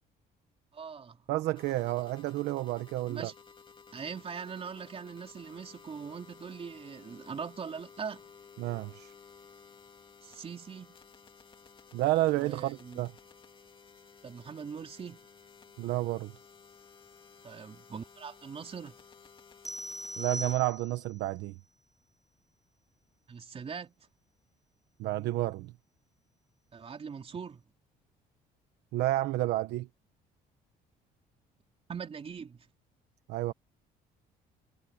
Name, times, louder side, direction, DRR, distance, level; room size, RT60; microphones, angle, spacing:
voice 1, 0.7-1.2 3.1-3.4 3.9-8.3 10.2-11.0 12.3-13.1 14.2-15.2 17.4-19.0 23.3-24.1 26.7-27.6 31.9-32.7, right 6 dB, 35° right, 3.5 m, -42 dB
voice 2, 1.3-3.3 8.6-9.1 11.9-13.1 15.8-16.3 20.2-21.5 25.0-25.7 28.9-29.9 33.3-33.5, right 16 dB, 85° right, 1.0 m, -30 dB
sound 1, 1.5-20.6, left 5 dB, 30° left, 2.4 m, -55 dB
sound 2, 19.7-21.2, equal, ahead, 0.3 m, -40 dB
cardioid pair, 110°, 17 cm